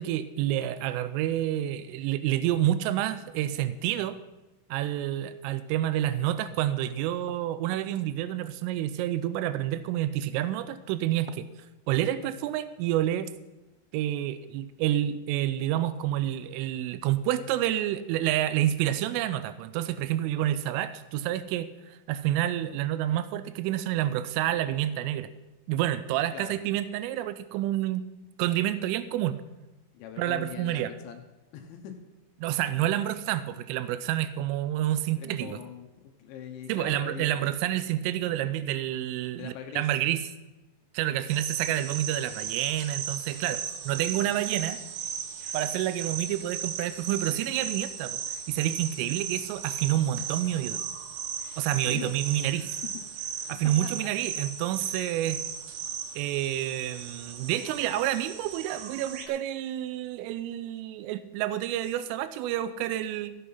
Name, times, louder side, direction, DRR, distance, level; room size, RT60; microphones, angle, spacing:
voice 1, 0.0-4.2 4.7-11.5 11.9-13.3 13.9-25.3 25.7-28.0 28.4-29.4 30.2-30.9 32.4-35.6 36.7-40.2 40.9-44.8 45.5-48.2 48.5-50.8 51.6-52.7 53.5-55.4 56.2-63.4, right 12 dB, 90° right, 13 dB, 3.2 m, -29 dB
voice 2, 29.9-31.2 31.5-32.0 35.2-37.4 39.4-39.9 51.8-52.1 54.0-54.1, left 8 dB, 75° left, 5 dB, 3.2 m, -41 dB
sound 1, 41.3-59.3, right 8 dB, 70° right, 2.8 m, -36 dB
16.0 x 8.4 x 5.6 m, 1.1 s
omnidirectional pair, 5.7 m